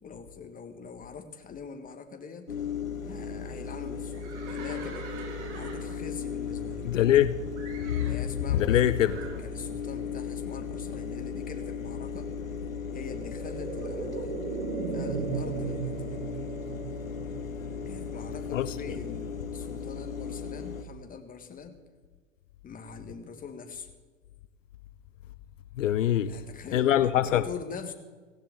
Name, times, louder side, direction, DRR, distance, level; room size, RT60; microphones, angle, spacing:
voice 1, 0.0-2.6 3.0-5.1 5.5-6.9 8.1-12.3 12.9-14.4 14.9-16.2 17.9-21.8 22.6-23.9 26.3-27.9, left 5 dB, 20° left, 1.8 m, -43 dB
sound 1, 2.5-20.8, left 6 dB, 90° left, 1.1 m, -36 dB
Livestock farm animals working animals, 4.1-7.2 7.6-8.3 9.0-9.4, right 4 dB, 60° right, 3.9 m, -44 dB
voice 2, 6.8-7.4 8.0-8.2 8.5-9.1 18.5-18.7 25.8-26.3 26.7-27.4, left 11 dB, 75° left, 0.7 m, -23 dB
sound 2, 10.5-20.0 20.4-20.5, right 5 dB, 75° right, 2.0 m, -38 dB
16.5 x 16.5 x 3.8 m
hypercardioid pair, 95°, 39 cm